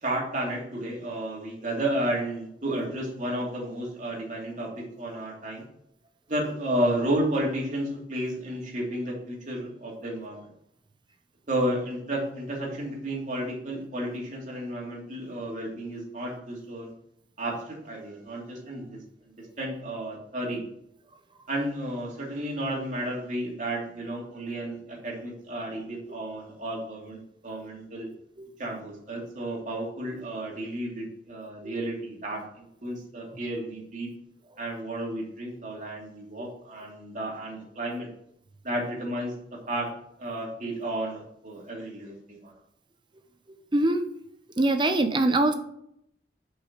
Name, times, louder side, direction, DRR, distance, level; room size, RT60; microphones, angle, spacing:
voice 1, 0.0-5.6 6.3-10.5 11.5-16.9 17.4-18.9 19.6-20.6 21.5-28.1 28.6-34.1 34.6-38.1 38.6-39.3 39.7-39.9 40.2-42.5, right 1 dB, 45° right, -2 dB, 2.7 m, -32 dB
voice 2, 44.6-45.5, right 2 dB, 25° right, 7 dB, 0.7 m, -23 dB
6.7 x 5.7 x 5.9 m, 0.73 s
head